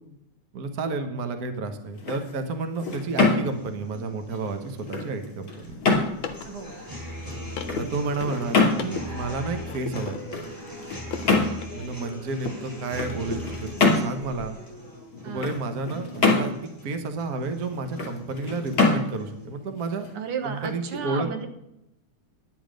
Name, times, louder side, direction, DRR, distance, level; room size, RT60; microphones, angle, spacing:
voice 1, 0.5-5.8 7.8-10.2 11.7-14.6 15.2-16.5 16.8-20.1 20.4-21.3, right 3 dB, 85° right, 8 dB, 0.8 m, -31 dB
sound 1, 1.8-20.7, left 3 dB, 35° left, 3.0 m, -28 dB
sound 2, 3.4-19.4, left 1 dB, 5° right, 3.9 m, -41 dB
sound 3, 5.6-12.7 13.0-14.5, left 6 dB, 60° left, 1.4 m, -38 dB
voice 2, 6.4-6.8 15.2-15.6 20.1-21.5, right 6 dB, 60° right, 7 dB, 1.7 m, -33 dB
11.0 x 10.0 x 5.1 m, 0.84 s
omnidirectional pair, 3.5 m